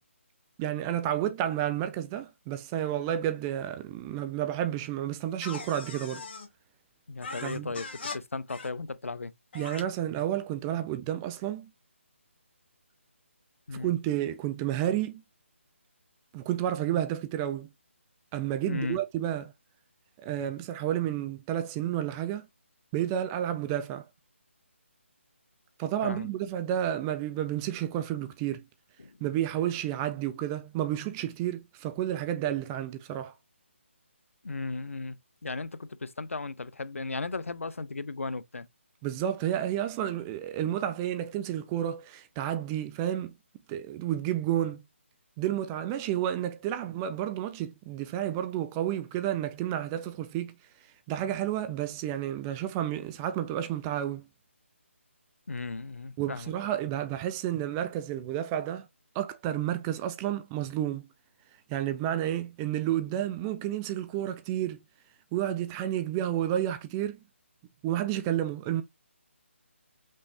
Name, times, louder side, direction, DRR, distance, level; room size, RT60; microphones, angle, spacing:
voice 1, 0.6-6.2 7.4-7.7 9.5-11.7 13.7-15.2 16.3-17.7 18.3-19.5 20.2-22.5 22.9-24.0 25.8-28.6 29.2-33.3 39.0-43.3 43.7-44.8 45.4-50.6 51.1-54.2 56.2-58.9 59.2-61.1 61.7-64.8 65.3-67.2 67.8-68.8, right 11 dB, 15° right, 0.3 m, -31 dB
sound 1, 5.4-6.5 7.2-8.2 8.5-8.7 9.5-9.8, left 4 dB, 50° left, 1.6 m, -40 dB
voice 2, 7.1-9.3 13.7-13.9 18.7-19.0 26.0-26.3 29.0-29.2 34.4-38.7 55.5-56.5, left 3 dB, 85° left, 0.5 m, -36 dB
5.3 x 3.1 x 2.7 m
figure-of-eight pair, 155°, 7 cm